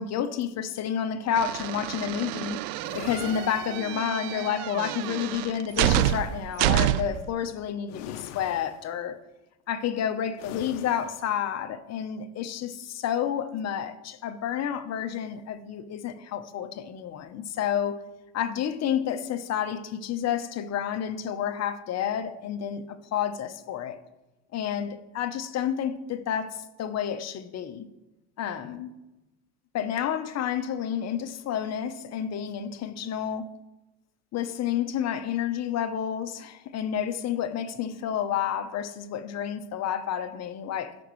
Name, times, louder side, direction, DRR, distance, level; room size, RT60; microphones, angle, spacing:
voice 1, 0.0-2.7 2.9-9.2 9.7-18.0 18.3-24.0 24.5-27.8 28.4-28.9 29.7-33.5 34.3-41.0, left 9 dB, 45° left, 0.9 m, -30 dB
sound 1, 1.4-7.3, right 14 dB, 75° right, 0.5 m, -28 dB
sound 2, 2.8-4.4 5.7-6.7 7.9-9.0 10.4-11.3, left 11 dB, 85° left, 0.7 m, -43 dB
15.5 x 5.2 x 3.1 m
supercardioid pair, 95°, 37 cm